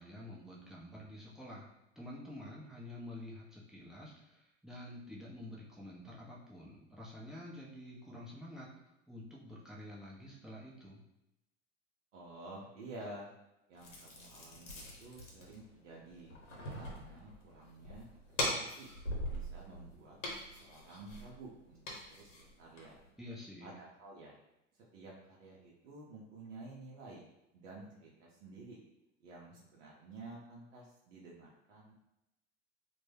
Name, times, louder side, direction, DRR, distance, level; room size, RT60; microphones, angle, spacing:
voice 1, 0.0-1.7 2.0-8.7 9.1-11.0 23.2-23.7, left 1 dB, ahead, -4 dB, 0.5 m, -49 dB
voice 2, 12.1-13.3 13.7-16.3 16.7-18.9 19.3-20.2 20.6-21.8 22.1-23.0 23.6-24.4 24.9-27.2 27.5-28.8 29.2-31.9, right 2 dB, 70° right, -3 dB, 0.7 m, -51 dB
sound 1, 13.8-23.1, left 1 dB, 80° left, 0.9 m, -42 dB
2.1 x 2.1 x 3.2 m, 0.88 s
hypercardioid pair, 85°, 38 cm